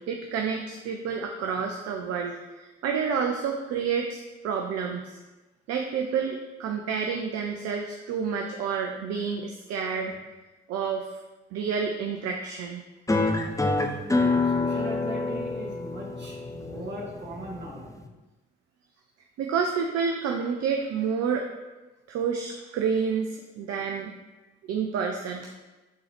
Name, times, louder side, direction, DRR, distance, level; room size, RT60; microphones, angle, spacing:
voice 1, 0.0-5.2 5.7-10.1 10.7-11.1 11.5-12.8 19.4-21.5 22.1-24.1 24.6-25.5, right 6 dB, 55° right, 2 dB, 0.6 m, -29 dB
sound 1, 13.1-18.1, left 3 dB, 10° left, 0.7 m, -27 dB
voice 2, 14.2-17.9, right 1 dB, 35° right, -3 dB, 2.0 m, -39 dB
9.4 x 3.9 x 3.0 m, 1.1 s
figure-of-eight pair, 40°, 32 cm